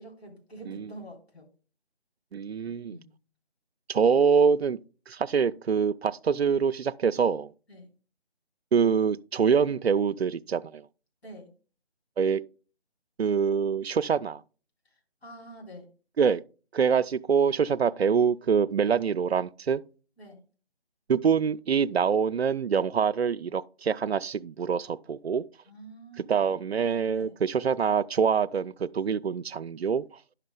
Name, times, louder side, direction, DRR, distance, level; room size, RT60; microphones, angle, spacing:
voice 1, 0.0-1.5 2.8-3.2 7.7-7.9 11.2-11.5 14.9-15.9 20.2-20.4 25.7-26.5 27.1-27.4, right 1 dB, 70° left, 3.8 m, -47 dB
voice 2, 2.3-3.0 3.9-4.8 5.1-7.5 8.7-10.9 12.2-12.4 13.2-14.4 16.2-16.4 16.7-19.8 21.1-25.4 26.3-30.0, right 6 dB, 70° right, 0.5 m, -25 dB
11.0 x 6.6 x 2.2 m
figure-of-eight pair, 165°, 33 cm